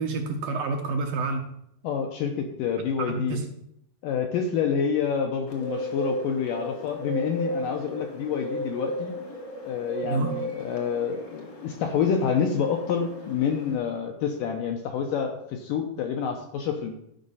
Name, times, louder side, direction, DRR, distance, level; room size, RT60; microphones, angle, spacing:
voice 1, 0.0-1.4 3.0-3.4 10.0-10.3, right 3 dB, 75° right, 3 dB, 2.3 m, -28 dB
voice 2, 1.8-3.4 4.0-9.1 9.7-16.9, left 7 dB, 80° left, 4 dB, 2.0 m, -28 dB
Bird, 5.5-13.8, equal, 50° left, 1.3 m, -35 dB
12.0 x 5.2 x 5.5 m, 0.76 s
omnidirectional pair, 4.7 m